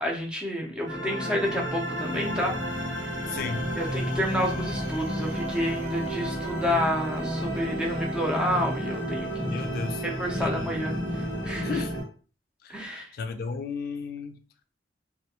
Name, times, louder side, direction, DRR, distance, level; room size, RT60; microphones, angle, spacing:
voice 1, 0.0-2.6 3.8-9.5 10.0-11.8 12.7-13.1, equal, 5° right, 0.5 m, -29 dB
sound 1, 0.9-12.0, equal, 80° right, 1.1 m, -31 dB
voice 2, 3.3-3.7 9.5-10.0 10.4-10.7 11.6-12.0 12.6-14.4, left 5 dB, 55° left, 0.3 m, -34 dB
2.3 x 2.2 x 2.8 m
head